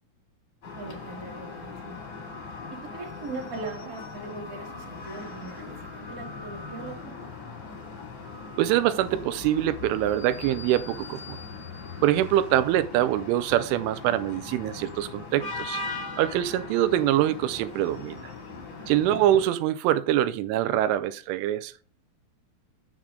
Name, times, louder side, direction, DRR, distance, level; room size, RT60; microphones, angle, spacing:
sound 1, 0.6-19.5, left 4 dB, 45° left, 3.0 m, -40 dB
voice 1, 0.7-2.2 2.9-7.3 18.7-18.8, right 3 dB, 35° right, 1.3 m, -40 dB
voice 2, 8.6-11.4 12.0-15.8 16.2-18.3 18.9-21.7, right 12 dB, 85° right, 3.0 m, -24 dB
7.4 x 7.3 x 3.7 m
omnidirectional pair, 5.5 m